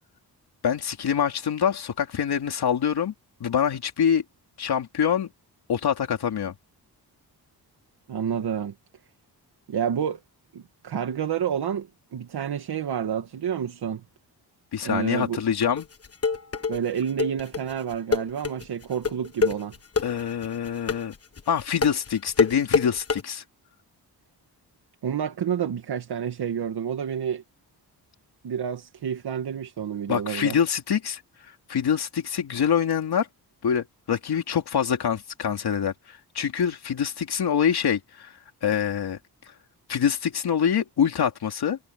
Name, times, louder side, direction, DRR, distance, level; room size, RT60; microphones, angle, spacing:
voice 1, 0.6-3.1 3.4-4.2 4.6-5.3 5.7-6.5 14.7-15.9 20.0-21.1 21.5-23.4 30.1-33.3 33.6-38.3 38.6-39.2 39.9-41.8, left 8 dB, 75° left, 2.9 m, -25 dB
voice 2, 8.1-8.7 9.7-10.2 10.5-14.0 14.8-15.4 16.7-19.7 25.0-27.4 28.4-30.6, right 8 dB, 70° right, 2.0 m, -29 dB
sound 1, 15.8-23.2, left 5 dB, 35° left, 1.6 m, -25 dB
wide cardioid pair, 145°, 40 cm